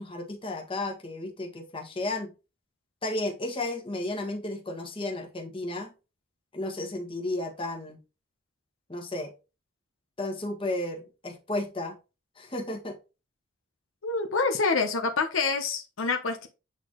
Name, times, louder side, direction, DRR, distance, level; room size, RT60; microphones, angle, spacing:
voice 1, 0.0-2.3 3.0-5.9 6.5-8.0 8.9-9.3 10.2-12.0 12.4-13.0, left 2 dB, 25° left, 2 dB, 1.5 m, -33 dB
voice 2, 14.0-16.5, left 4 dB, 75° left, 5 dB, 1.0 m, -27 dB
8.2 x 4.1 x 3.1 m, 0.29 s
head